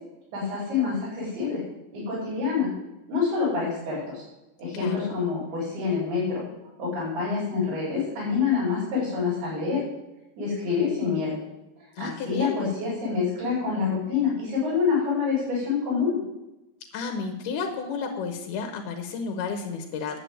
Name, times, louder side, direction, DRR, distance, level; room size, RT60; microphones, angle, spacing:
voice 1, 0.3-1.6 1.9-2.7 3.1-4.2 4.6-6.4 6.8-9.8 10.4-11.4 12.0-16.2, left 5 dB, 80° right, -8 dB, 6.7 m, -26 dB
voice 2, 4.7-5.1 12.0-12.7 16.9-20.2, left 5 dB, 90° left, 4 dB, 3.1 m, -32 dB
11.0 x 8.0 x 7.9 m, 0.97 s
omnidirectional pair, 4.5 m